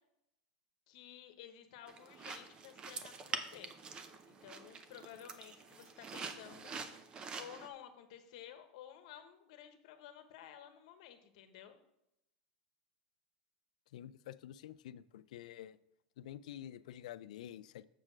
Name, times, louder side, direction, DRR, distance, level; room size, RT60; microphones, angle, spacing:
voice 1, 0.9-3.7 4.3-6.8 7.4-11.8, left 10 dB, 65° left, 8 dB, 1.0 m, -53 dB
sound 1, 1.9-7.7, right 5 dB, 25° right, 0.6 m, -46 dB
voice 2, 13.9-15.8 16.2-17.8, left 11 dB, 85° left, 15 dB, 0.4 m, -49 dB
7.2 x 4.5 x 6.2 m, 0.82 s
supercardioid pair, 150°, 4 cm